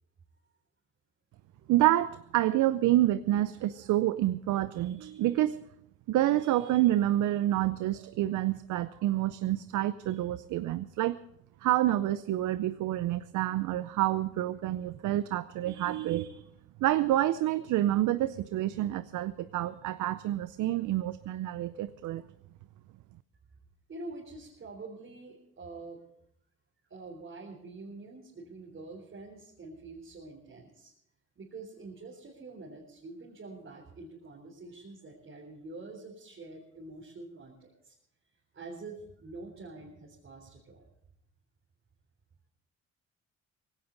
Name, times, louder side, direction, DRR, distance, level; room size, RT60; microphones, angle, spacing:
voice 1, 1.7-5.6 6.1-11.2 11.6-16.4 16.8-22.2, right 14 dB, 80° right, 14 dB, 0.6 m, -28 dB
voice 2, 23.9-26.0 26.9-30.9 31.4-37.9 38.5-40.8, right 3 dB, 40° right, -2 dB, 3.8 m, -46 dB
18.0 x 17.0 x 4.0 m, 0.74 s
cardioid pair, 90°, 30 cm